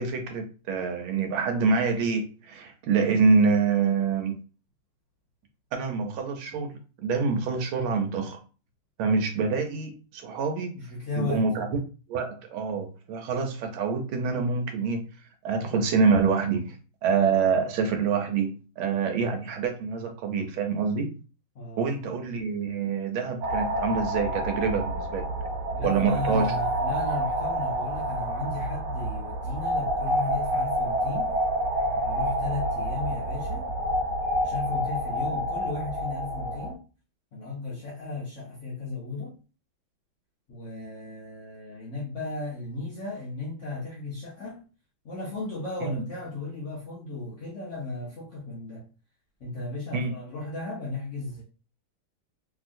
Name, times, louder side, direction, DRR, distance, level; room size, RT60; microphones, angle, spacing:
voice 1, 0.0-4.4 5.7-8.4 9.0-10.8 11.2-11.8 12.1-15.0 15.4-21.1 21.8-25.3 25.8-26.5 45.8-46.0 49.9-50.1, right 5 dB, 90° right, 1.5 m, -26 dB
voice 2, 10.8-11.4 21.5-21.8 25.7-31.4 32.0-33.7 34.4-36.8 37.3-39.4 40.5-44.6 45.0-48.8 49.4-51.4, left 3 dB, 90° left, 0.6 m, -35 dB
sound 1, 23.4-36.7, equal, 70° right, 1.2 m, -28 dB
3.0 x 2.7 x 2.5 m
omnidirectional pair, 2.2 m